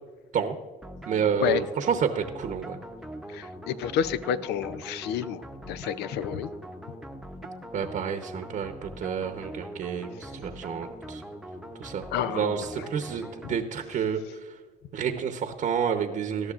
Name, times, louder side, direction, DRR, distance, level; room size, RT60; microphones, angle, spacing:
sound 1, 0.8-14.1, equal, ahead, 0.8 m, -42 dB
voice 1, 1.1-2.8 7.7-11.2 11.8-14.2 14.9-16.5, right 7 dB, 50° right, 7 dB, 0.9 m, -29 dB
voice 2, 3.3-6.5 12.1-12.9 13.4-13.5, left 9 dB, 80° left, 14 dB, 0.6 m, -30 dB
18.5 x 12.5 x 2.5 m, 1.4 s
cardioid pair, 110°, 17 cm